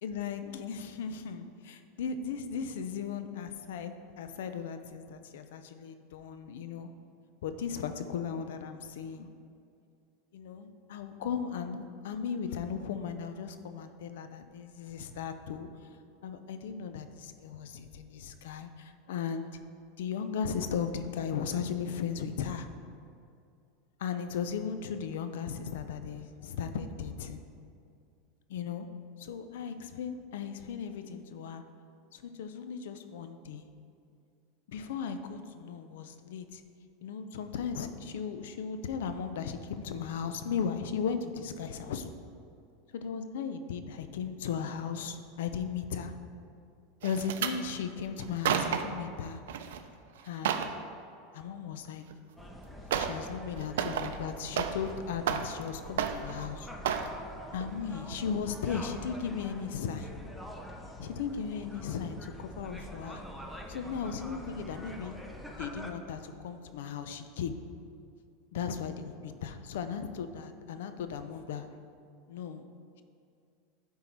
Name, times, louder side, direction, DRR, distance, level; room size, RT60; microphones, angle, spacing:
voice 1, 0.0-1.5 2.0-6.9 7.4-9.3 10.3-15.7 16.2-19.6 20.0-22.7 24.0-27.4 28.5-28.9 29.2-31.6 32.1-33.7 34.7-36.6 37.0-42.1 42.9-46.1 47.0-49.4 50.2-50.6 51.3-52.0 53.0-56.7 57.5-60.1 61.0-63.2 63.7-65.2 65.6-67.5 68.5-71.7 72.3-72.7, left 6 dB, 80° left, 9 dB, 0.6 m, -36 dB
sound 1, 47.0-47.6 48.2-49.0 49.5-49.8 50.2-50.8 52.1-52.2 52.9-53.3 53.6-54.9 55.2-55.7 56.0-56.5 56.8-57.1 57.6-57.8 58.1-58.2, right 8 dB, 85° right, 0.5 m, -31 dB
sound 2, 52.4-65.9, equal, ahead, 0.6 m, -45 dB
11.0 x 3.8 x 4.5 m, 2.5 s
supercardioid pair, 155°, 0 cm